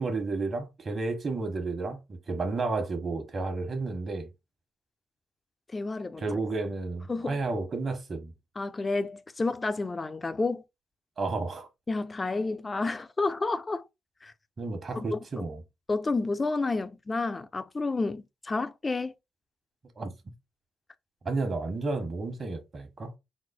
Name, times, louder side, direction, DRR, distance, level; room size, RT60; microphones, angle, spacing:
voice 1, 0.0-4.3 6.2-8.3 11.2-11.7 14.6-15.6 20.0-20.1 21.2-23.1, right 3 dB, 45° right, 1.5 m, -32 dB
voice 2, 5.7-6.3 7.1-7.7 8.6-10.6 11.9-13.8 14.2-14.3 14.9-15.4 15.9-19.1, left 3 dB, 30° left, 0.6 m, -30 dB
4.3 x 2.0 x 4.3 m
supercardioid pair, 60°, 0 cm